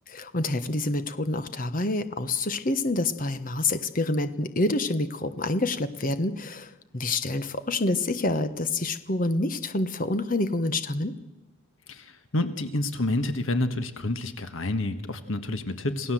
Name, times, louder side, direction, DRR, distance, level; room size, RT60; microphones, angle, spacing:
voice 1, 0.1-11.1, left 2 dB, 40° left, 11 dB, 1.2 m, -27 dB
voice 2, 11.9-16.1, left 2 dB, 70° left, 9 dB, 1.5 m, -29 dB
27.5 x 17.0 x 7.7 m, 1.1 s
head